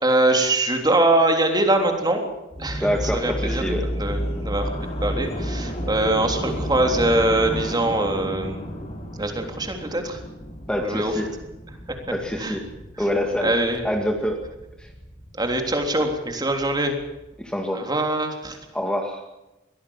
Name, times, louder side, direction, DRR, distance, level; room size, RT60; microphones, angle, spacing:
voice 1, 0.0-2.3 2.6-8.6 9.1-10.2 10.8-11.1 11.9-12.0 12.4-12.6 13.0-13.1 13.4-13.9 15.4-17.0 17.7-18.6, right 1 dB, 25° right, 4 dB, 3.5 m, -23 dB
sound 1, 2.5-17.4, equal, 35° left, 4.7 m, -32 dB
voice 2, 2.8-3.9 10.7-11.3 12.1-12.7 13.0-13.6 13.8-14.4 14.8-14.9 17.4-17.9 18.7-19.2, equal, 5° left, 3 dB, 2.1 m, -26 dB
23.0 x 17.0 x 7.2 m, 0.98 s
head